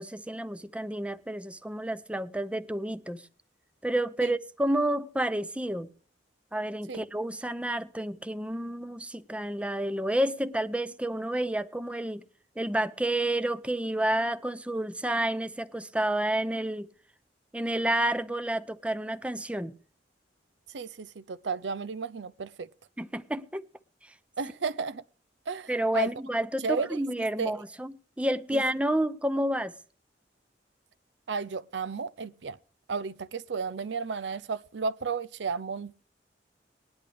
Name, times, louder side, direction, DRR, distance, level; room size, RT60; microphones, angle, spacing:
voice 1, 0.0-3.2 3.8-5.9 6.5-12.2 12.6-16.9 17.5-19.7 23.0-23.6 25.7-29.7, right 1 dB, 5° right, 0.6 m, -30 dB
voice 2, 20.7-22.7 24.4-25.0 25.5-26.1 26.6-27.5 28.5-28.6 31.3-32.6 32.9-36.0, right 5 dB, 75° right, 0.6 m, -33 dB
19.5 x 10.5 x 3.4 m
head